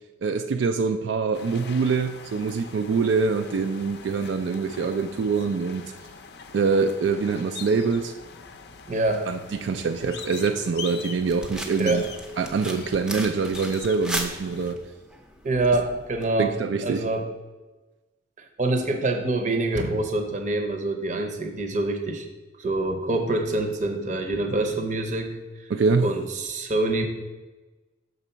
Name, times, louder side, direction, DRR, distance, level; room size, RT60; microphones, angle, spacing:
voice 1, 0.2-5.9 6.5-8.1 9.3-12.0 12.4-14.8 16.4-17.1 25.7-26.1, right 4 dB, 80° right, 7 dB, 0.3 m, -24 dB
sound 1, 1.3-14.7, left 5 dB, 60° left, 0.5 m, -43 dB
voice 2, 8.9-9.3 11.8-12.1 15.4-16.5 16.8-17.3 18.4-22.3 22.6-25.3 26.0-27.0, right 2 dB, 40° right, 5 dB, 0.7 m, -25 dB
sound 2, 11.3-16.3, equal, 5° right, 0.5 m, -36 dB
6.1 x 4.0 x 5.5 m, 1.2 s
head